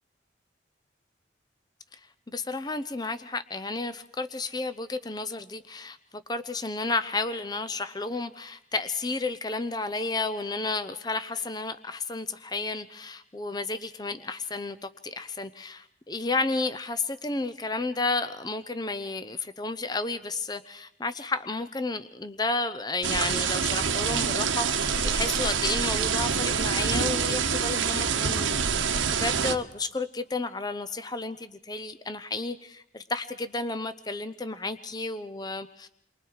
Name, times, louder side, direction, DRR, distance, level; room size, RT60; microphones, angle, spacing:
voice 1, 2.3-35.9, left 3 dB, 20° left, 12 dB, 0.8 m, -32 dB
sound 1, 23.0-29.6, right 6 dB, 90° right, 1.5 m, -26 dB
29.0 x 23.5 x 4.8 m, 0.74 s
head